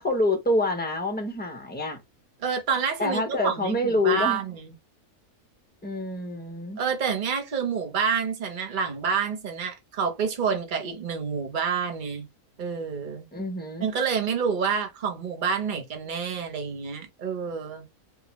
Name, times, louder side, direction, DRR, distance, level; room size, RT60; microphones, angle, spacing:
voice 1, 0.0-2.0 3.0-4.4 5.8-6.8 13.3-13.9, left 2 dB, 10° left, 0.7 m, -26 dB
voice 2, 2.4-4.7 6.8-12.3 12.6-13.3 13.8-17.8, right 6 dB, 35° right, 1.0 m, -28 dB
3.7 x 2.4 x 2.9 m
omnidirectional pair, 1.6 m